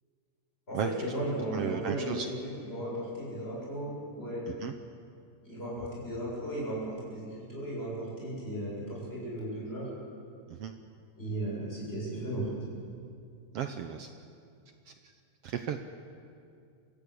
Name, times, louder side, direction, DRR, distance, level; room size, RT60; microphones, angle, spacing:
voice 1, 0.7-4.4 5.4-9.9 11.2-12.6, right 1 dB, 15° left, -5 dB, 8.1 m, -36 dB
voice 2, 1.5-2.3 4.5-4.7 10.5-10.7 13.5-14.1 14.9-15.0 15.4-15.8, right 8 dB, 70° right, 7 dB, 1.5 m, -34 dB
25.5 x 16.0 x 8.6 m, 2.4 s
omnidirectional pair, 3.6 m